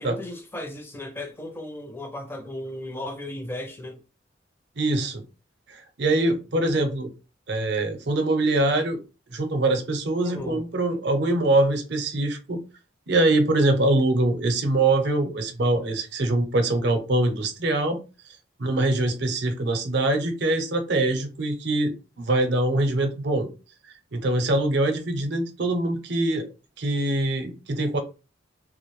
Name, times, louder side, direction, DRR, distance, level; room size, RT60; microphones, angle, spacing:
voice 1, 0.0-4.0 10.2-10.6, left 1 dB, 10° left, 0.4 m, -35 dB
voice 2, 4.8-5.2 5.7-7.1 7.5-9.0 9.3-12.6 13.1-18.0 18.6-21.9 22.2-23.5 24.1-26.5 26.8-28.0, right 2 dB, 60° right, 0.6 m, -23 dB
2.5 x 2.0 x 3.1 m
head